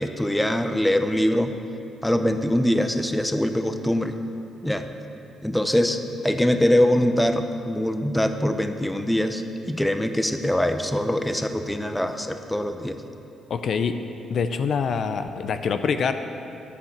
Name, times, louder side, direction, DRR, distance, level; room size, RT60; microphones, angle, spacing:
voice 1, 0.0-1.5 2.0-4.1 4.6-4.9 5.4-9.4 9.7-13.0, left 1 dB, 5° left, 7 dB, 0.7 m, -23 dB
voice 2, 13.5-14.0 14.3-16.1, left 6 dB, 60° left, 8 dB, 0.6 m, -25 dB
9.1 x 8.3 x 7.4 m, 2.7 s
cardioid pair, 90°, 0 cm